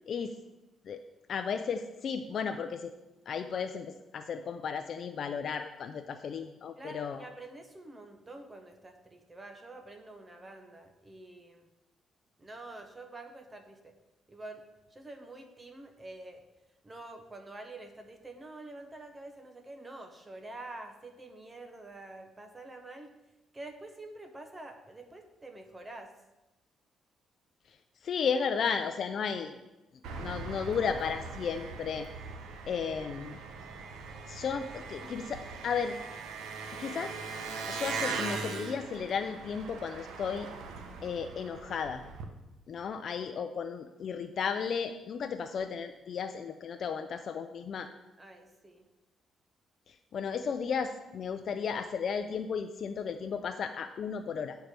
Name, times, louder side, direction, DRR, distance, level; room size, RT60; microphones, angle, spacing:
voice 1, 1.3-2.9 3.3-3.9 4.1-7.3 28.0-29.6 30.2-32.1 32.7-33.4 34.3-36.0 36.8-37.2 37.7-40.5 41.0-42.0 42.7-47.9 49.9-54.6, left 6 dB, 60° left, 7 dB, 0.5 m, -34 dB
voice 2, 6.7-11.7 12.4-13.9 14.3-16.4 16.8-23.1 23.5-26.1 48.2-48.9, right 2 dB, 20° right, 5 dB, 1.0 m, -47 dB
Engine, 30.0-42.2, right 4 dB, 80° right, 1.0 m, -40 dB
10.0 x 4.6 x 6.7 m, 1.0 s
cardioid pair, 90°, 0 cm